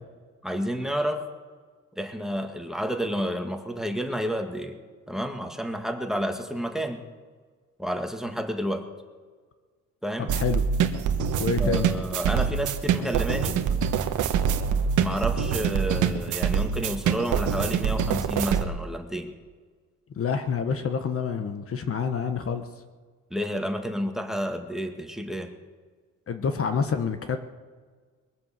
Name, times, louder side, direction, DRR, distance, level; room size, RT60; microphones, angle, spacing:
voice 1, 0.4-1.2 2.0-4.8 5.1-7.0 7.8-8.9 10.0-10.3 11.6-13.6 15.0-19.3 23.3-25.5, equal, ahead, 6 dB, 1.8 m, -30 dB
voice 2, 10.2-10.6 11.4-11.9 20.2-22.7 26.3-27.4, left 6 dB, 50° left, 9 dB, 1.1 m, -27 dB
sound 1, 10.3-18.6, right 7 dB, 85° right, 1.2 m, -25 dB
21.5 x 7.7 x 7.5 m, 1.5 s
cardioid pair, 90°, 30 cm